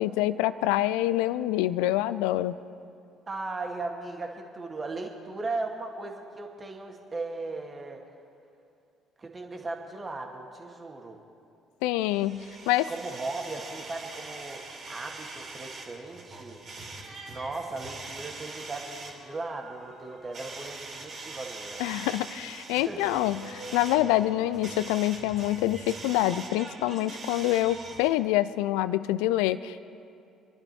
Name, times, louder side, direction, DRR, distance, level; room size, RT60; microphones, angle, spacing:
voice 1, 0.0-2.6 11.8-12.9 21.8-29.8, left 15 dB, 65° left, 16 dB, 0.4 m, -26 dB
voice 2, 3.3-8.0 9.2-11.2 12.9-16.6 17.3-21.8 22.9-23.0, right 3 dB, 30° right, 2 dB, 2.2 m, -37 dB
sound 1, 12.1-28.1, right 3 dB, 45° right, 3.0 m, -43 dB
26.5 x 11.5 x 4.6 m, 2.5 s
figure-of-eight pair, 50°, 0 cm